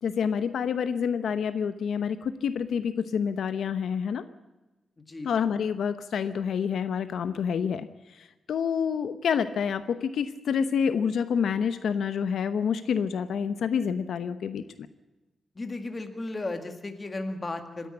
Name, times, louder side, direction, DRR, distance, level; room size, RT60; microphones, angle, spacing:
voice 1, 0.0-4.2 5.2-14.6, left 7 dB, 75° left, 11 dB, 0.8 m, -28 dB
voice 2, 5.0-5.3 15.6-17.9, left 2 dB, 25° left, 7 dB, 1.9 m, -35 dB
26.0 x 10.5 x 9.9 m, 1.1 s
wide cardioid pair, 155°, 0 cm